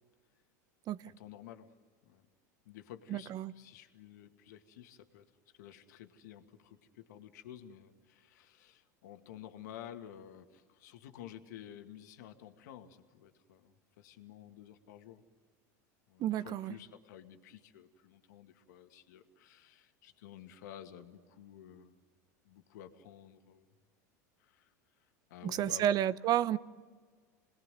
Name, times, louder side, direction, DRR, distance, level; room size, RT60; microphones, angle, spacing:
voice 1, 1.1-1.7 2.0-2.3 2.7-5.3 5.6-15.2 16.1-21.9 22.4-23.7 24.4-24.7 25.3-25.9, left 10 dB, 75° left, 2.2 m, -52 dB
voice 2, 3.1-3.5 16.2-16.7 25.4-26.6, right 11 dB, 45° right, 1.0 m, -31 dB
28.5 x 21.0 x 9.3 m
hypercardioid pair, 105°, 9 cm